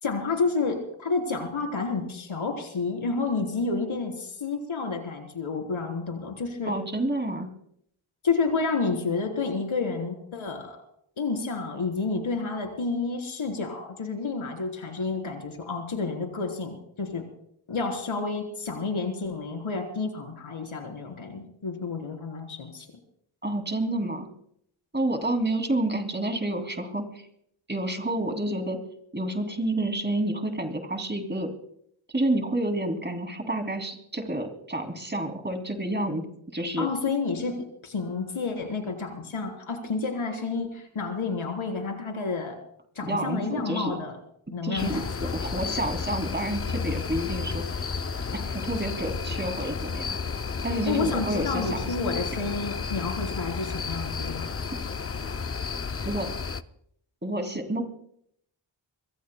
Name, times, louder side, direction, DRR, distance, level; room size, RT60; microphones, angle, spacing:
voice 1, 0.0-6.8 8.2-10.8 11.2-17.2 17.7-22.9 36.8-42.6 43.0-44.2 44.5-45.0 50.8-54.5, left 4 dB, 85° left, 3 dB, 3.9 m, -30 dB
voice 2, 6.6-7.5 23.4-24.3 24.9-27.3 27.7-28.8 29.1-31.5 32.1-36.2 36.5-36.9 43.0-44.0 44.6-47.9 48.3-50.2 50.6-51.9 56.0-56.3 57.2-57.8, right 1 dB, 20° right, 4 dB, 2.7 m, -29 dB
sound 1, 44.8-56.6, left 5 dB, 30° left, 0.5 m, -32 dB
26.0 x 22.5 x 2.2 m, 0.71 s
wide cardioid pair, 105°, 48 cm